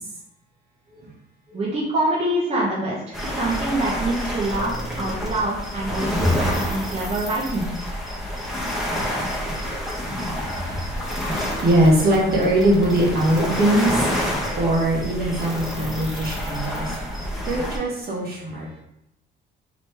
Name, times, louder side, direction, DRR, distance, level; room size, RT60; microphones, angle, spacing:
voice 1, 1.5-7.7, right 1 dB, 35° right, -5 dB, 1.0 m, -25 dB
sound 1, 3.1-17.8, equal, ahead, 1.0 m, -28 dB
voice 2, 6.2-6.5 10.4-18.7, right 1 dB, 50° right, -3 dB, 1.4 m, -22 dB
4.0 x 3.0 x 3.3 m, 0.83 s
cardioid pair, 90°, 20 cm